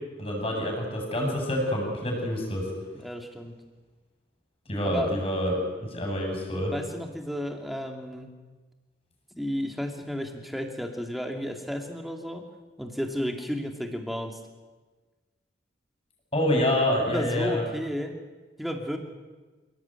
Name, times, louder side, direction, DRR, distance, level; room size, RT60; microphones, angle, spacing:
voice 1, 0.2-2.7 4.7-6.7 16.3-17.6, left 1 dB, 30° left, 1 dB, 7.7 m, -27 dB
voice 2, 2.9-3.5 4.8-5.1 6.7-8.3 9.4-12.5 12.8-14.4 17.0-18.2 18.6-19.0, equal, ahead, 2 dB, 2.6 m, -32 dB
29.0 x 18.0 x 9.2 m, 1.3 s
head